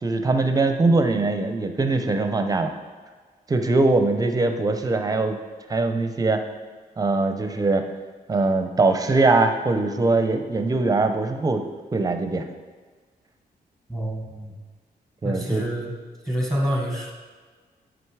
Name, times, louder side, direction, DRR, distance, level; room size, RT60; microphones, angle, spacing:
voice 1, 0.0-2.7 3.5-5.4 5.7-6.4 7.0-7.9 8.3-11.6 11.9-12.4 15.2-15.6, right 3 dB, 20° right, 7 dB, 0.7 m, -21 dB
voice 2, 13.9-14.5 15.2-15.9 16.2-17.1, equal, ahead, 0 dB, 1.4 m, -27 dB
9.6 x 5.2 x 4.8 m, 1.5 s
wide cardioid pair, 145°, 16 cm